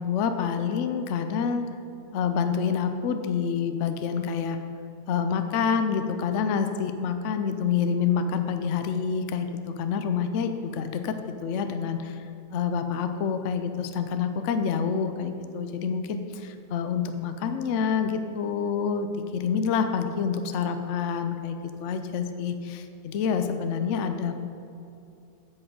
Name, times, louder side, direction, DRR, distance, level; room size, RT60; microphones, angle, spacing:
voice 1, 0.0-1.7 2.1-4.6 5.1-9.5 9.8-11.2 11.4-12.2 12.5-21.6 21.8-24.3, left 6 dB, 60° left, 8 dB, 0.9 m, -27 dB
8.6 x 6.5 x 7.9 m, 2.7 s
omnidirectional pair, 1.6 m